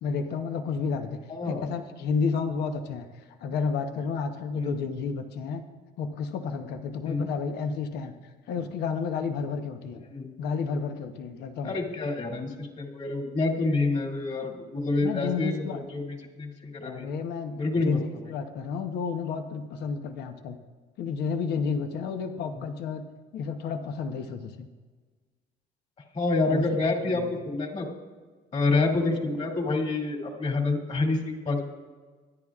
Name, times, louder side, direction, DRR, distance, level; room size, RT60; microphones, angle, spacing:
voice 1, 0.0-5.6 6.0-8.2 8.5-10.0 10.4-11.8 15.0-15.8 16.8-20.6 21.0-23.0 23.3-24.7 26.5-26.6 27.0-27.3, left 5 dB, 75° left, 7 dB, 1.0 m, -31 dB
voice 2, 1.3-1.7 4.6-4.7 7.1-7.3 10.1-10.3 11.6-16.0 16.4-17.1 17.6-18.0 22.6-22.7 26.1-27.9 28.5-31.6, left 3 dB, 40° left, 1 dB, 2.6 m, -27 dB
24.0 x 10.5 x 2.4 m, 1.4 s
cardioid pair, 110°, 17 cm